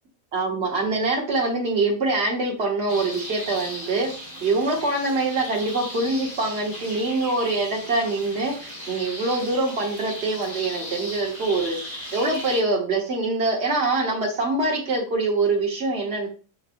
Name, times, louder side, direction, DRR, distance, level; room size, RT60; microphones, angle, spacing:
voice 1, 0.3-4.1 4.4-11.8 12.1-16.3, right 2 dB, 55° right, 0 dB, 1.3 m, -24 dB
sound 1, 2.9-12.6, equal, 35° left, 1.3 m, -37 dB
5.4 x 3.0 x 2.5 m, 0.36 s
omnidirectional pair, 1.4 m